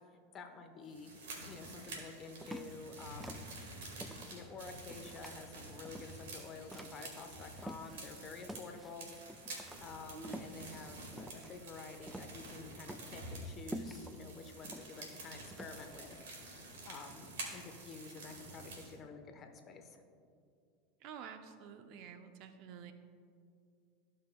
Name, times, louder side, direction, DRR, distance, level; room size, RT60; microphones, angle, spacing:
voice 1, 0.1-1.2 1.5-3.5 4.3-9.1 9.8-16.2 16.8-20.0, left 4 dB, 35° left, 5 dB, 0.9 m, -50 dB
sound 1, 0.9-18.9, right 2 dB, 80° right, 1.8 m, -49 dB
sound 2, 2.4-8.1 8.5-16.2, right 1 dB, 5° right, 0.4 m, -49 dB
voice 2, 10.1-10.6 21.0-22.9, right 7 dB, 55° right, 8 dB, 0.6 m, -50 dB
14.0 x 5.5 x 2.3 m, 2.3 s
hypercardioid pair, 105°, 0 cm